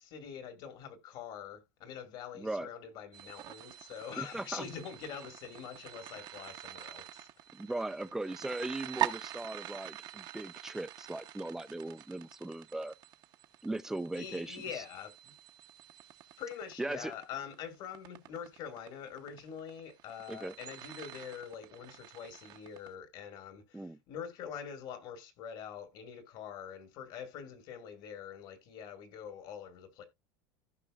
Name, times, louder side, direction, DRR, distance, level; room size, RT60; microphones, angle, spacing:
voice 1, 0.1-7.3 14.1-15.3 16.4-30.0, left 8 dB, 50° left, 1.9 m, -45 dB
voice 2, 2.4-2.7 4.2-4.7 7.5-12.9 13.6-14.8 16.8-17.1 20.3-20.5 23.7-24.0, right 2 dB, 5° right, 0.5 m, -38 dB
sound 1, 3.1-22.9, right 12 dB, 45° right, 0.9 m, -44 dB
15.0 x 5.4 x 2.4 m
supercardioid pair, 135°, 10 cm